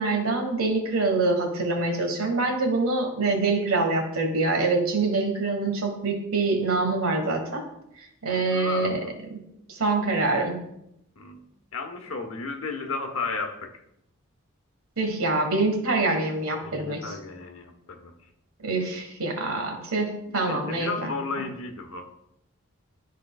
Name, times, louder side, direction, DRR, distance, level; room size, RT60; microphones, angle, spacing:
voice 1, 0.0-7.6 8.2-9.0 9.7-10.6 15.0-17.1 18.6-21.1, right 3 dB, 75° right, 3 dB, 1.5 m, -25 dB
voice 2, 8.3-9.1 11.2-11.4 11.7-13.8 16.6-18.1 20.3-22.1, left 4 dB, 70° left, 4 dB, 1.1 m, -34 dB
12.5 x 4.5 x 2.4 m, 0.79 s
head